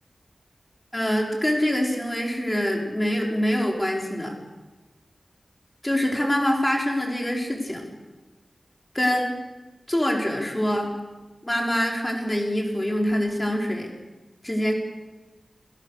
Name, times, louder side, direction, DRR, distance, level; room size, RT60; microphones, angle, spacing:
voice 1, 0.9-4.3 5.8-7.8 8.9-9.4 9.9-10.9 11.4-13.9 14.4-14.7, equal, 20° left, 0 dB, 5.4 m, -24 dB
29.5 x 17.0 x 6.9 m, 1.2 s
wide cardioid pair, 80°, 0 cm